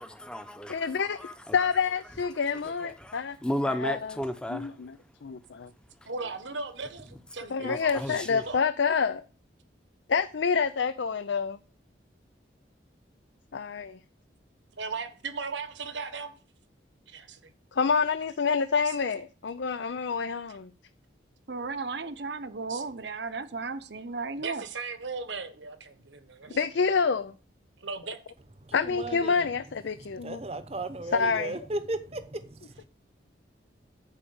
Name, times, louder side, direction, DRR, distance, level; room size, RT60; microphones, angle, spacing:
voice 1, 0.0-1.7 2.6-4.7 7.6-8.4, equal, 5° left, 0.8 m, -34 dB
voice 2, 0.7-3.4 3.7-4.1 4.5-4.9 5.2-5.7 7.5-9.2 10.1-11.6 13.5-14.0 17.8-20.7 26.6-27.3 28.7-30.4 31.1-31.6, left 5 dB, 75° left, 0.5 m, -27 dB
voice 3, 6.0-8.6 14.8-16.3 17.1-17.5 18.8-19.0 20.5-20.6 22.7-22.8 24.4-26.9 27.8-28.2, right 4 dB, 80° right, 1.3 m, -38 dB
voice 4, 21.5-24.7 26.5-26.6, right 4 dB, 65° right, 0.8 m, -35 dB
voice 5, 28.6-29.5 29.9-32.9, right 2 dB, 35° right, 0.8 m, -36 dB
10.5 x 5.0 x 7.0 m
head